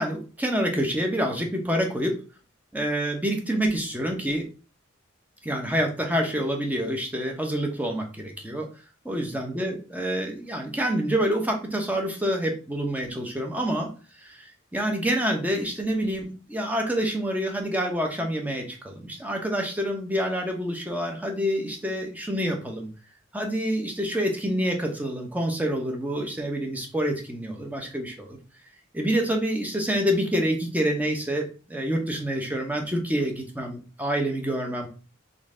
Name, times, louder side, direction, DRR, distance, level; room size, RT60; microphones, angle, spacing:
voice 1, 0.0-2.2 2.7-4.5 5.4-8.7 9.0-13.9 14.2-22.9 23.3-28.4 28.9-34.9, equal, 10° right, 2 dB, 0.9 m, -27 dB
3.9 x 3.2 x 3.7 m, 0.35 s
head